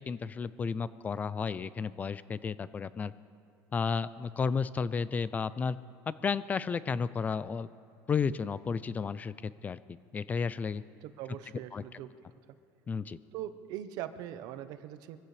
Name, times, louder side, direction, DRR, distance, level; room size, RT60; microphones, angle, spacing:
voice 1, 0.0-3.1 3.7-5.8 6.1-7.7 8.1-9.8 10.1-10.8 11.7-11.8 12.9-13.2, left 5 dB, 20° left, 16 dB, 0.4 m, -32 dB
voice 2, 11.0-12.1 12.5-12.6 13.3-15.2, right 11 dB, 65° right, 11 dB, 0.9 m, -41 dB
24.0 x 15.5 x 3.3 m, 2.6 s
cardioid pair, 145°, 7 cm